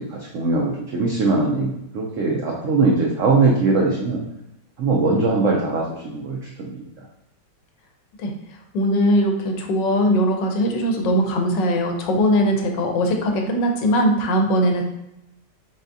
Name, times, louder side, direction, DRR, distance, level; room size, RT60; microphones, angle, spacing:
voice 1, 0.0-4.2 4.8-6.8, right 3 dB, 85° right, -1 dB, 0.6 m, -21 dB
voice 2, 8.7-14.8, equal, 80° left, 3 dB, 1.3 m, -20 dB
4.0 x 3.4 x 2.6 m, 0.85 s
omnidirectional pair, 2.0 m